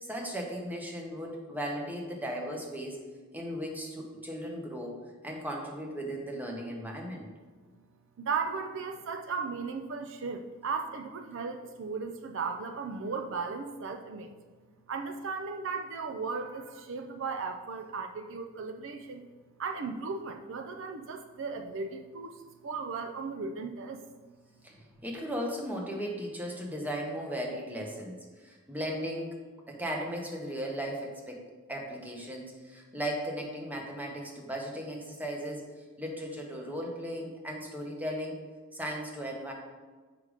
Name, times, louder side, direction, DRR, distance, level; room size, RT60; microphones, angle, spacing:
voice 1, 0.0-3.0 3.3-5.0 5.2-7.3 24.6-29.4 29.7-31.4 31.7-35.7 36.0-38.4 38.7-39.5, equal, 10° right, 0 dB, 1.0 m, -36 dB
voice 2, 8.2-14.3 14.9-19.2 19.6-22.3 22.6-24.0, right 4 dB, 60° right, 6 dB, 0.5 m, -36 dB
6.7 x 5.0 x 4.9 m, 1.4 s
head